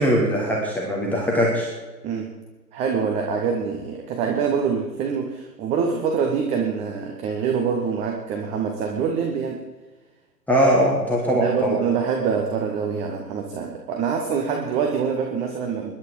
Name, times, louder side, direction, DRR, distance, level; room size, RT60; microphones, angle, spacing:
voice 1, 0.0-1.7 10.5-11.8, equal, 5° left, -4 dB, 1.8 m, -21 dB
voice 2, 2.0-2.4 2.7-9.6 11.4-15.9, right 6 dB, 15° right, 2 dB, 0.9 m, -25 dB
21.5 x 11.0 x 4.7 m, 1.2 s
figure-of-eight pair, 125°, 50 cm